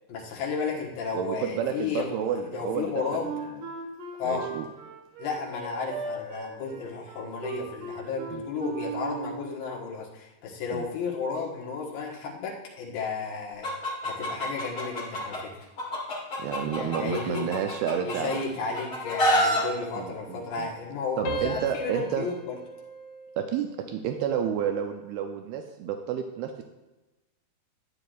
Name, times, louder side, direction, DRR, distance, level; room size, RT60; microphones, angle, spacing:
voice 1, 0.1-3.3 4.2-4.5 5.2-13.7 14.0-15.6 16.8-17.5 18.0-22.5, left 5 dB, 70° left, -3 dB, 3.2 m, -33 dB
voice 2, 1.1-3.2 4.2-4.7 8.3-8.4 10.7-10.9 16.4-18.4 20.0-20.7 21.2-22.3 23.4-26.6, right 8 dB, 85° right, 5 dB, 2.5 m, -30 dB
Wind instrument woodwind instrument, 3.2-9.5, right 5 dB, 60° right, 2.6 m, -37 dB
Chicken rooster, 13.6-15.4 15.8-18.4 18.7-19.6, equal, 40° left, 2.6 m, -27 dB
sound 1, 19.0-20.9 21.2-23.8 24.3-24.6, equal, 85° left, 1.3 m, -38 dB
11.5 x 9.7 x 2.5 m, 1.1 s
omnidirectional pair, 4.5 m